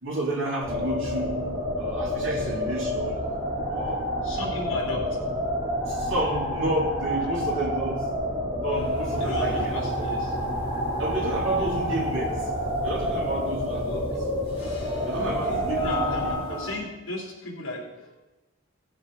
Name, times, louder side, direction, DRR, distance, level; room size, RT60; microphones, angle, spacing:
voice 1, 0.0-3.2 3.7-4.1 5.9-8.1 8.6-9.8 11.0-12.5 12.8-14.0 15.0-16.6, right 1 dB, 65° right, -4 dB, 3.2 m, -31 dB
sound 1, 0.6-16.4, equal, 25° right, 4.4 m, -29 dB
voice 2, 4.2-5.2 9.1-10.4 11.5-11.8 13.8-14.1 15.1-18.1, left 1 dB, 65° left, -1 dB, 3.3 m, -35 dB
sound 2, 8.7-16.7, right 1 dB, 25° left, 4.6 m, -36 dB
17.0 x 7.5 x 4.9 m, 1.0 s
head